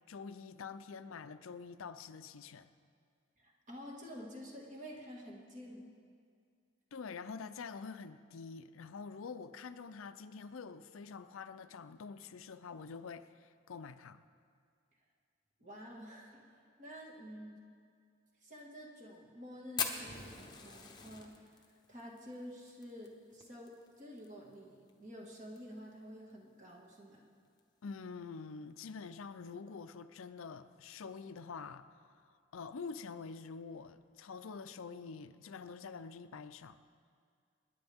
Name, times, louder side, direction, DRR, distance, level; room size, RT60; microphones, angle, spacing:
voice 1, 0.1-2.7 6.9-14.2 27.8-32.0 32.5-36.8, left 5 dB, 80° left, 11 dB, 0.5 m, -46 dB
voice 2, 3.4-5.9 15.6-16.5 16.8-17.6 18.4-21.4 21.9-27.2, equal, 35° right, -2 dB, 1.9 m, -49 dB
Fire, 19.8-24.3 24.5-24.6 24.9-25.0 25.4-25.8 26.3-26.4 27.4-27.6, left 5 dB, 20° left, 0.9 m, -41 dB
26.0 x 10.0 x 3.6 m, 2.2 s
head